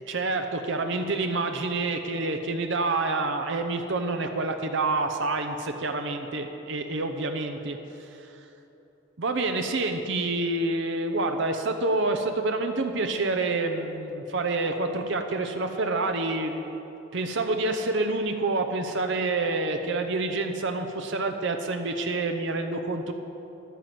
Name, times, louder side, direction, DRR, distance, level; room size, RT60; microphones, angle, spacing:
voice 1, 0.1-8.2 9.2-16.6 17.1-23.1, right 2 dB, 60° right, 5 dB, 0.7 m, -28 dB
10.5 x 9.3 x 7.7 m, 3.0 s
head